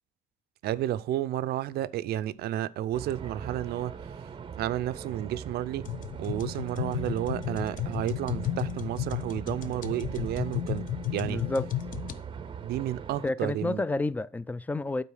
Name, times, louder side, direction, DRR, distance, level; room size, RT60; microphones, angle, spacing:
voice 1, 0.6-4.3 4.6-5.9 6.2-11.5 12.6-13.8, right 12 dB, 70° right, 0.5 m, -32 dB
sound 1, 2.9-13.3, right 7 dB, 30° right, 0.6 m, -41 dB
sound 2, 5.9-12.2, left 13 dB, 50° left, 0.6 m, -34 dB
voice 2, 11.3-11.7 13.2-15.0, left 2 dB, 10° left, 0.4 m, -30 dB
8.8 x 4.1 x 6.2 m
cardioid pair, 110°, 17 cm